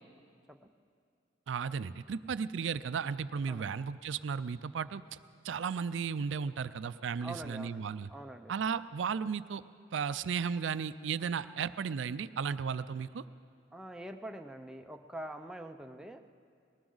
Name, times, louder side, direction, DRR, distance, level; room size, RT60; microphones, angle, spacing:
voice 1, 1.5-5.2 5.4-8.1 8.5-9.6 9.9-13.2, right 6 dB, 85° right, 14 dB, 0.4 m, -35 dB
voice 2, 7.2-8.5 13.7-16.2, right 1 dB, 5° right, 4 dB, 0.5 m, -45 dB
19.5 x 19.0 x 3.9 m, 2.2 s
head